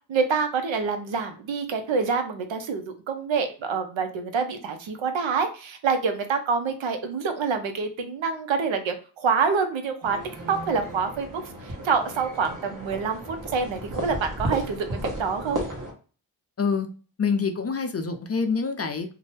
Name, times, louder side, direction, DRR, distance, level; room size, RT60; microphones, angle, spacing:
voice 1, 0.1-10.2 10.5-14.9 15.2-15.6, right 5 dB, 70° right, 7 dB, 0.7 m, -26 dB
sound 1, 10.0-15.9, right 1 dB, 40° right, 1.1 m, -34 dB
voice 2, 17.2-19.1, left 5 dB, 30° left, 6 dB, 0.5 m, -26 dB
2.6 x 2.2 x 3.2 m, 0.38 s
cardioid pair, 55°, 48 cm